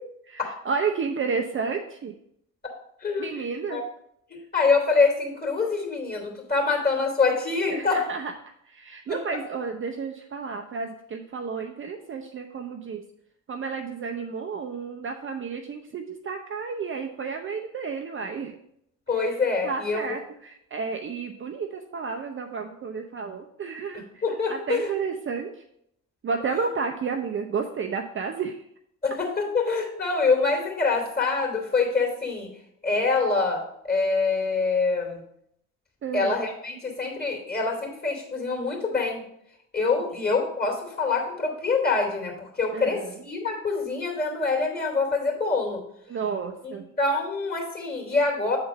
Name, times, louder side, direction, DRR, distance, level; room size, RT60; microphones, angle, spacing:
voice 1, 0.3-2.1 3.2-3.8 7.7-8.3 8.7-13.0 13.5-18.5 19.2-19.3 19.6-24.0 24.5-25.5 26.2-28.6 36.0-36.3 40.0-40.1 42.7-43.2 46.1-46.9, right 5 dB, 30° right, 4 dB, 0.6 m, -31 dB
voice 2, 3.0-3.4 3.7-3.8 4.3-8.1 9.1-9.2 19.1-20.2 23.9-24.9 29.0-32.5 32.8-35.2 36.1-39.2 39.7-45.8 46.6-48.6, left 4 dB, 25° left, 1 dB, 2.6 m, -25 dB
7.9 x 3.9 x 5.2 m, 0.72 s
figure-of-eight pair, 45°, 40 cm